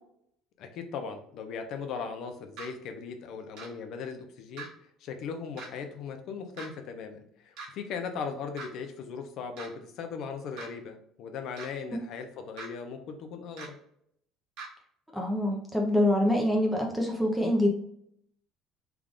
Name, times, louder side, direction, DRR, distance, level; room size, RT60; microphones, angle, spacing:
voice 1, 0.6-4.7 5.0-13.7, left 5 dB, 60° left, 6 dB, 0.6 m, -38 dB
sound 1, 2.6-2.7 3.6-3.7 4.6-4.7 5.6-5.7 6.6-6.7 7.6-7.7 8.6-8.7 9.6-9.7 10.6-10.7 11.6-11.7 12.6-12.7 13.6-13.7 14.6-14.7, right 4 dB, 75° right, 1.4 m, -41 dB
voice 2, 15.1-17.7, left 1 dB, ahead, 0 dB, 0.7 m, -25 dB
3.5 x 2.4 x 3.5 m, 0.70 s
cardioid pair, 135°, 0 cm